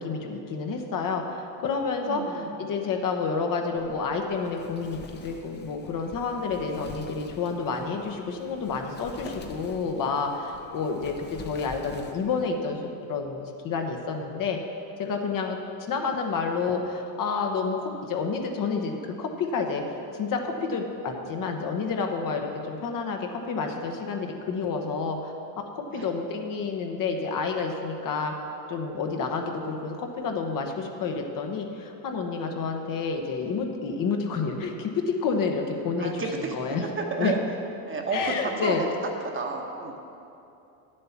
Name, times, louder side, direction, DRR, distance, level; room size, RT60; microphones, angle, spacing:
voice 1, 0.0-12.8 13.1-14.6 15.0-15.6 15.9-19.8 20.2-25.3 25.9-28.3 28.7-36.9 37.2-37.3 38.1-38.8, left 5 dB, 40° left, 3 dB, 1.1 m, -29 dB
voice 2, 2.0-2.6 25.9-26.1 36.0-37.4 37.8-38.9 39.2-39.9, right 4 dB, 25° right, 1 dB, 1.2 m, -31 dB
Wind, 3.8-12.4, left 4 dB, 20° left, 0.7 m, -46 dB
9.5 x 7.7 x 5.9 m, 2.7 s
supercardioid pair, 110°, 48 cm